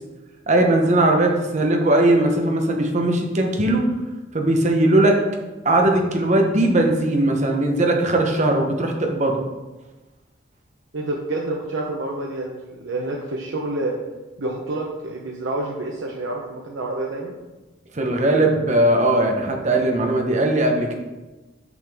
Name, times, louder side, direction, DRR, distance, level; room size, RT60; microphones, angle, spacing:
voice 1, 0.5-3.9 4.3-5.2 5.6-9.4 17.9-20.9, right 1 dB, 35° right, 2 dB, 0.8 m, -19 dB
voice 2, 10.9-13.9 14.4-17.3, right 2 dB, 80° right, -1 dB, 0.7 m, -28 dB
6.0 x 5.9 x 3.5 m, 1.1 s
head